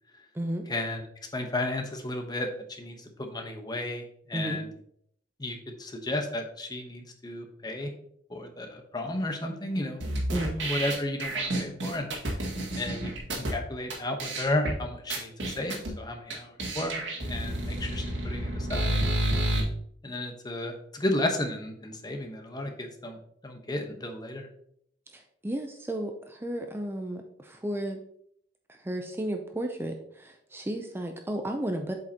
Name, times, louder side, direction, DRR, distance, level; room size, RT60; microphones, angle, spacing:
voice 1, 0.7-1.0 1.3-2.5 2.8-4.7 5.4-7.9 8.3-12.1 12.8-19.0 20.0-23.2 23.4-24.5, left 1 dB, 25° left, 4 dB, 1.0 m, -33 dB
sound 1, 10.0-13.5 13.9-14.0 14.2-14.7 15.1-15.9 16.3-16.4 16.6-19.6, right 1 dB, 90° right, 1.9 m, -30 dB
voice 2, 25.1-28.0 28.7-31.9, right 1 dB, 15° right, 4 dB, 0.5 m, -33 dB
7.8 x 5.1 x 2.8 m, 0.67 s
head